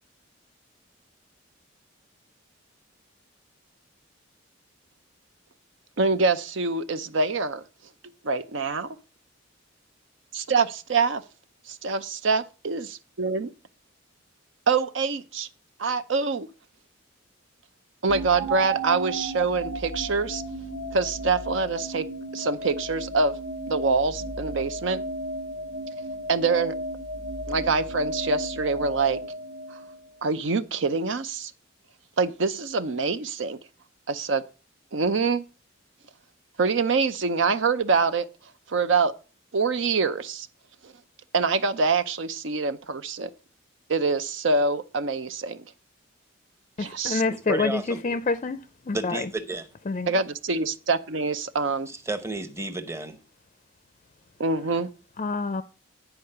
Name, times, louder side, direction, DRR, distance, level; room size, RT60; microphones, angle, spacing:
voice 1, 6.0-7.6 8.2-9.0 10.3-11.2 11.7-13.5 14.7-15.5 15.8-16.5 18.0-20.4 20.9-22.0 22.3-23.4 23.7-25.0 26.3-26.8 27.5-29.2 29.7-29.8 30.2-31.5 32.2-33.6 34.1-34.4 34.9-35.4 36.6-38.2 38.7-39.1 39.5-40.5 40.8-40.9 41.3-43.3 43.9-45.6 46.8-47.2 50.1-50.2 50.5-51.9 54.4-54.9, right 4 dB, 65° right, 0.7 m, -25 dB
sound 1, 18.1-30.2, right 1 dB, 40° right, 1.2 m, -34 dB
voice 2, 46.8-49.3 49.9-50.1 55.2-55.6, left 3 dB, 35° left, 0.5 m, -27 dB
voice 3, 47.5-48.0 48.9-49.7 51.9-53.2, right 2 dB, 15° right, 0.9 m, -32 dB
10.0 x 4.8 x 6.7 m
head